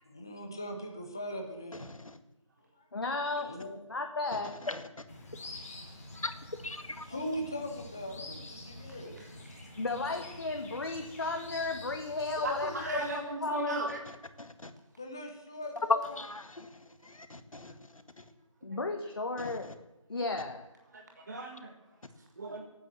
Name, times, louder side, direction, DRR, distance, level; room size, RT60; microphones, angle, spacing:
voice 1, 0.1-1.8 3.3-3.8 5.4-5.9 7.1-9.2 15.0-16.2, equal, 5° left, 3 dB, 0.6 m, -40 dB
voice 2, 2.9-3.5 3.9-4.5 9.8-13.8 18.6-19.7 20.1-20.6, left 3 dB, 45° left, 4 dB, 1.5 m, -34 dB
sound 1, 5.1-13.1, left 2 dB, 30° left, 2.7 m, -47 dB
voice 3, 6.6-7.0 14.4-14.7 16.2-16.7 17.3-17.7 19.4-19.5, left 2 dB, 85° left, 9 dB, 1.9 m, -40 dB
voice 4, 12.4-14.0 18.7-18.8 20.9-21.7 22.4-22.6, right 2 dB, 35° right, 2 dB, 1.6 m, -36 dB
19.0 x 9.2 x 7.5 m, 0.97 s
figure-of-eight pair, 170°, 17 cm